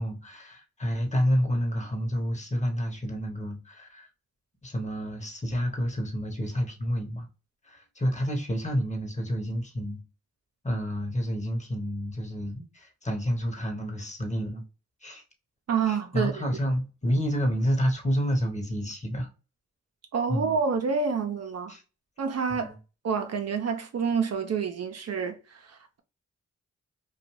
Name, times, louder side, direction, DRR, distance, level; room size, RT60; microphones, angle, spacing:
voice 1, 0.0-4.1 4.6-7.3 7.6-10.0 10.6-14.6 15.0-15.2 15.9-19.3 20.3-20.5 21.7-21.8 22.5-22.7, equal, 25° left, 1.0 m, -29 dB
voice 2, 15.7-16.3 20.1-21.7 22.2-22.7 23.0-26.0, right 6 dB, 60° right, 0.6 m, -28 dB
2.5 x 2.3 x 3.0 m
cardioid pair, 55°, 29 cm